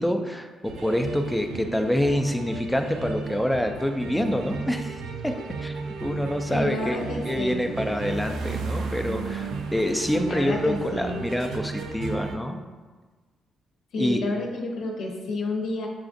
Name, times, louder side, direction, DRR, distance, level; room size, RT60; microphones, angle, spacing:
voice 1, 0.0-5.0 5.2-12.6 14.0-14.2, equal, 5° left, 5 dB, 0.3 m, -26 dB
sound 1, 0.6-12.4, right 4 dB, 80° right, 0.4 m, -34 dB
voice 2, 6.5-7.7 10.1-11.2 13.9-15.9, left 2 dB, 85° left, -1 dB, 0.7 m, -30 dB
6.9 x 2.4 x 2.5 m, 1.4 s
cardioid pair, 125°, 0 cm